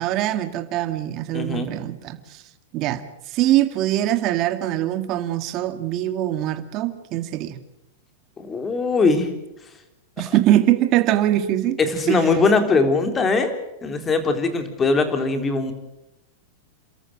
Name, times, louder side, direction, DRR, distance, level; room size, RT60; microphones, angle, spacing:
voice 1, 0.0-2.4 2.7-3.0 3.3-7.6 10.2-11.8 12.1-12.2, right 13 dB, 40° right, 2.0 m, -22 dB
voice 2, 1.3-1.8 8.4-9.3 11.8-13.5 13.8-15.7, left 3 dB, 20° left, 3.7 m, -21 dB
28.5 x 13.5 x 8.9 m
hypercardioid pair, 125°, 0 cm